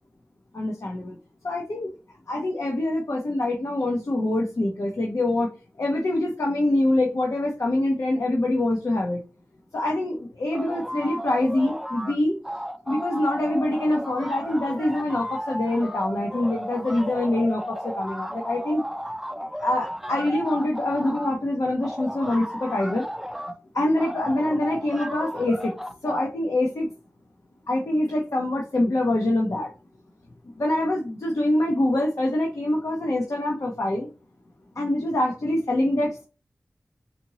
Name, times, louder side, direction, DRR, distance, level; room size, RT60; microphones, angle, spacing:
voice 1, 0.5-1.2 1.4-1.9 2.3-5.5 5.8-9.2 9.7-12.4 12.9-18.8 19.6-23.1 23.7-25.7 26.0-26.9 27.7-29.7 30.6-34.1 34.8-36.2, left 1 dB, 70° left, -1 dB, 0.8 m, -25 dB
sound 1, 10.5-12.2 12.4-21.3 21.8-23.6 24.0-26.3, equal, 5° right, 0.4 m, -34 dB
4.2 x 2.8 x 2.9 m, 0.33 s
cardioid pair, 45°, 5 cm